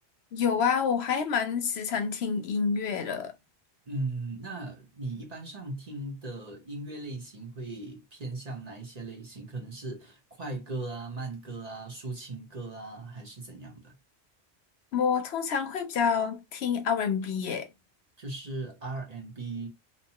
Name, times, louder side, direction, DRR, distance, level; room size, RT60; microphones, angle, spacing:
voice 1, 0.3-3.3 14.9-17.7, left 6 dB, 70° left, 0.8 m, -28 dB
voice 2, 3.9-13.9 18.2-19.7, right 2 dB, 40° right, 0.9 m, -38 dB
2.7 x 2.3 x 2.8 m
omnidirectional pair, 1.1 m